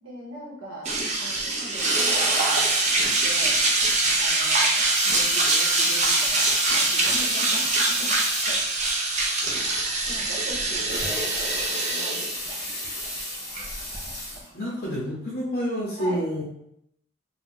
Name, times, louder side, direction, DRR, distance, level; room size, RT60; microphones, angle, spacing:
voice 1, 0.0-0.9 1.2-3.6 4.2-8.2 8.4-8.6 10.0-12.6 16.0-16.3, right 1 dB, 75° right, -4 dB, 1.0 m, -40 dB
sound 1, 0.9-14.4, right 2 dB, 35° right, 0.5 m, -24 dB
Water tap faucet / Sink (filling or washing) / Liquid, 4.9-8.7 9.1-9.2 9.5-9.6 10.7-14.9 15.5-15.6, left 1 dB, 15° left, 0.8 m, -33 dB
voice 2, 14.5-16.4, equal, 45° left, -5 dB, 0.6 m, -28 dB
2.6 x 2.1 x 3.5 m, 0.76 s
head